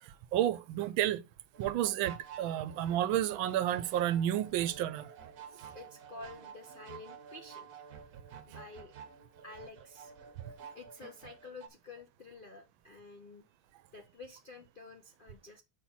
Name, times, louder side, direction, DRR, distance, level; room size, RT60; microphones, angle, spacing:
voice 1, 0.0-1.2 1.6-5.2, right 12 dB, 80° right, 1.3 m, -31 dB
sound 1, 1.5-11.7, right 7 dB, 55° right, 1.3 m, -50 dB
voice 2, 5.7-7.8 8.4-8.9 9.4-10.1 10.7-13.6 13.9-15.6, left 3 dB, 75° left, 0.4 m, -50 dB
6.1 x 4.3 x 5.4 m
omnidirectional pair, 2.2 m